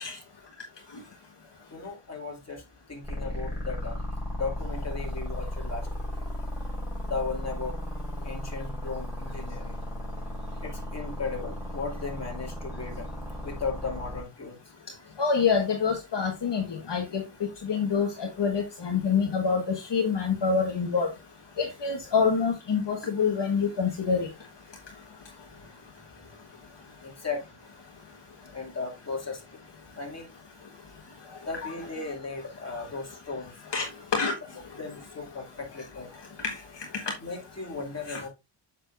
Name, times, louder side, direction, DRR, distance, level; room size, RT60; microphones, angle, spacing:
voice 1, 1.7-4.0 4.3-5.9 7.0-7.8 8.2-9.8 10.6-13.1 13.4-14.6 27.0-27.5 28.5-29.4 30.0-30.3 31.4-33.5 34.8-36.1 37.2-38.3, left 4 dB, 30° left, 2.6 m, -36 dB
sound 1, 3.0-14.2, left 1 dB, 5° right, 4.6 m, -35 dB
voice 2, 15.2-17.2 17.6-21.1 21.6-24.3 33.7-33.8 34.1-34.3 36.4-36.5 38.1-38.2, left 5 dB, 55° left, 1.5 m, -26 dB
7.7 x 6.7 x 2.5 m
wide cardioid pair, 90°, 50 cm